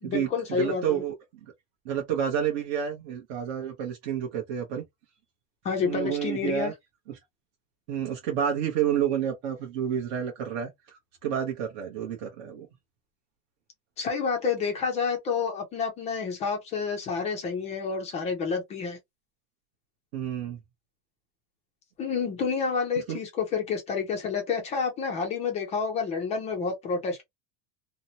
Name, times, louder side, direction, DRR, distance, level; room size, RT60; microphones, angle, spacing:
voice 1, 0.0-1.0 5.6-6.7 14.0-19.0 22.0-27.2, left 5 dB, 20° left, 0.4 m, -29 dB
voice 2, 0.6-1.1 1.8-4.8 5.8-6.7 7.9-12.7 20.1-20.6 23.1-23.2, right 9 dB, 45° right, 0.8 m, -29 dB
2.9 x 2.0 x 2.7 m
supercardioid pair, 170°, 40 cm